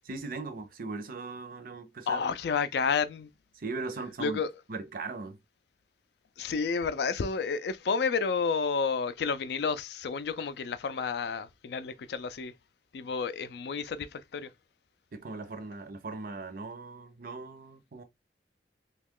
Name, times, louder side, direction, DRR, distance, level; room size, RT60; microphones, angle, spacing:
voice 1, 0.1-2.3 3.5-4.4 4.7-5.4 15.1-18.0, right 3 dB, 50° right, 0.6 m, -39 dB
voice 2, 2.1-3.3 4.2-4.5 6.4-12.5 12.9-14.5, left 5 dB, 65° left, 0.4 m, -30 dB
3.0 x 2.3 x 3.6 m
head